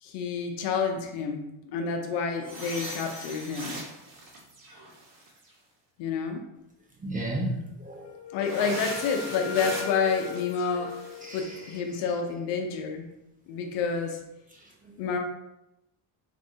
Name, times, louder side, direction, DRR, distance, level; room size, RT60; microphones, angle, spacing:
voice 1, 0.0-3.8 6.0-6.5 8.3-13.1 13.5-14.2 15.0-15.2, left 5 dB, 80° left, 4 dB, 0.7 m, -29 dB
sound 1, 2.4-5.5 8.4-11.5, right 1 dB, 50° right, 1.1 m, -40 dB
voice 2, 7.0-8.1 11.2-11.8 14.5-15.0, right 1 dB, 20° right, -4 dB, 0.8 m, -34 dB
Wind instrument woodwind instrument, 8.0-11.9, left 9 dB, 40° left, 0.6 m, -39 dB
4.3 x 2.6 x 2.7 m, 0.89 s
cardioid pair, 95°, 42 cm